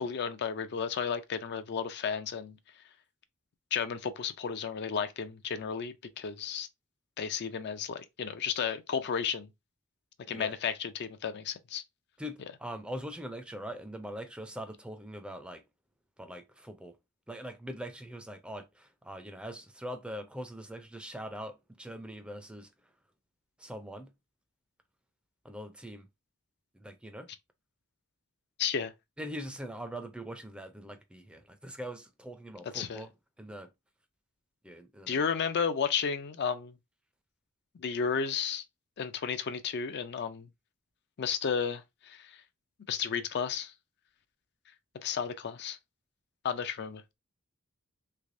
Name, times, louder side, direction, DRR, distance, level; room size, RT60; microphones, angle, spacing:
voice 1, 0.0-2.6 3.7-6.7 7.2-9.5 10.3-11.8 28.6-28.9 32.7-33.0 35.1-36.7 37.8-38.6 39.0-40.5 41.2-42.4 42.9-43.7 45.0-45.8 46.4-47.0, left 6 dB, 50° left, 0.4 m, -33 dB
voice 2, 12.2-15.6 16.2-16.9 17.3-22.7 23.6-24.1 25.4-26.1 26.8-27.3 29.2-33.1 33.4-33.7 34.6-35.2, equal, 5° right, 0.5 m, -42 dB
3.3 x 3.1 x 2.6 m
head